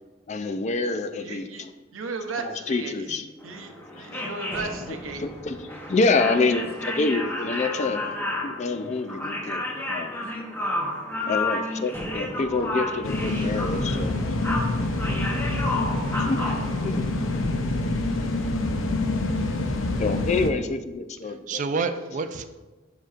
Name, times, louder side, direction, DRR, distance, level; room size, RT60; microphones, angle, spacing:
voice 1, 0.3-1.7 2.4-3.3 4.0-4.2 4.9-8.0 8.4-9.6 9.9-10.1 11.3-14.2 16.2-17.1 17.4-17.7 20.0-21.6, left 3 dB, 35° left, 9 dB, 0.4 m, -27 dB
voice 2, 1.2-1.7 1.9-3.2 3.4-5.2 16.2-16.6, right 4 dB, 85° right, 5 dB, 0.8 m, -36 dB
sound 1, 3.4-17.5, left 2 dB, 10° left, 0.9 m, -32 dB
sound 2, 13.0-20.5, left 2 dB, 80° left, 0.7 m, -26 dB
voice 3, 13.3-13.9 15.7-16.2 21.5-22.5, right 4 dB, 40° right, 7 dB, 0.4 m, -31 dB
9.0 x 5.9 x 2.5 m, 1.2 s
head